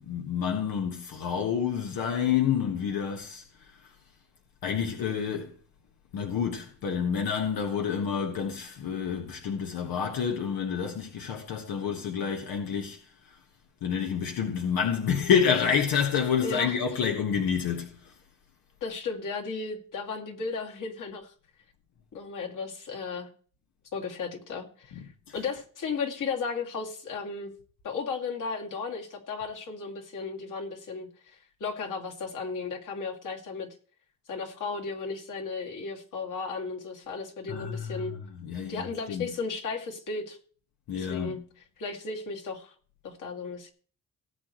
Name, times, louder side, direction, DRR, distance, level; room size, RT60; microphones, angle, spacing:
voice 1, 0.0-3.7 4.6-5.5 6.1-13.0 13.8-18.1 25.3-25.4 37.5-39.3 40.9-41.3, left 7 dB, 90° left, 1.5 m, -28 dB
voice 2, 16.4-16.8 18.8-21.3 22.1-23.3 23.9-25.0 25.3-27.5 27.8-33.7 34.3-38.2 38.7-40.4 40.9-42.7 43.0-43.7, left 4 dB, 65° left, 2.5 m, -35 dB
18.0 x 8.5 x 3.2 m
cardioid pair, 115°, 34 cm